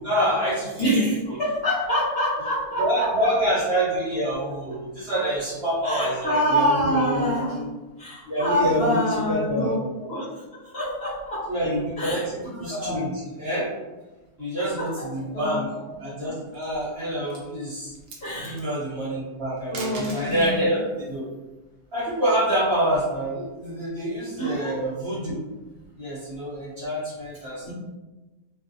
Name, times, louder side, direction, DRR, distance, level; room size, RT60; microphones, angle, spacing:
voice 1, 0.0-1.0 2.8-7.7 8.2-9.0 9.3-9.7 11.5-13.1 13.4-13.7 14.4-15.7 16.0-17.9 18.4-21.2 21.9-25.4 26.0-27.7, equal, 45° right, -9 dB, 1.0 m, -26 dB
voice 2, 0.8-3.1 5.8-7.6 8.0-11.5 12.0-12.2 12.5-13.0 14.8-15.8 18.2-18.6 19.7-20.7 24.4-24.9 27.6-27.7, equal, 50° left, -10 dB, 0.9 m, -26 dB
sound 1, 16.3-16.8 17.2-17.5 17.9-18.6 19.6-20.6 22.1-23.3, right 3 dB, 80° right, 0.5 m, -40 dB
2.6 x 2.1 x 2.6 m, 1.1 s
omnidirectional pair, 1.6 m